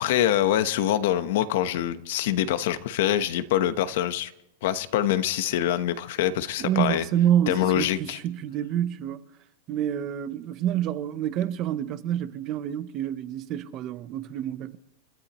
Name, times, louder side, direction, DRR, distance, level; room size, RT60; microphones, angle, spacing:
voice 1, 0.0-4.3 4.6-7.1 7.5-8.2, left 11 dB, 55° left, 1.1 m, -25 dB
voice 2, 6.6-9.2 9.7-14.8, right 10 dB, 30° right, 0.8 m, -27 dB
30.0 x 13.0 x 3.1 m
supercardioid pair, 170°, 0 cm